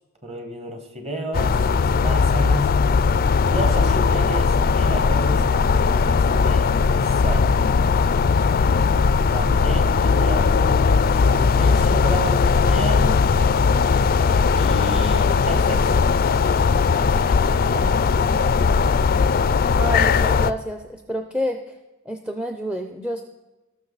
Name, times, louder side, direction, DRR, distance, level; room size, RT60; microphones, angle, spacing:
voice 1, 0.2-2.7 3.5-7.5 9.3-13.2 14.5-16.0 16.9-18.0, right 1 dB, 30° right, 4 dB, 1.6 m, -32 dB
sound 1, 1.3-20.5, left 5 dB, 45° left, 0.4 m, -18 dB
voice 2, 19.8-21.6 22.1-23.2, equal, 5° right, 5 dB, 0.5 m, -28 dB
18.5 x 6.3 x 4.0 m, 1.1 s
head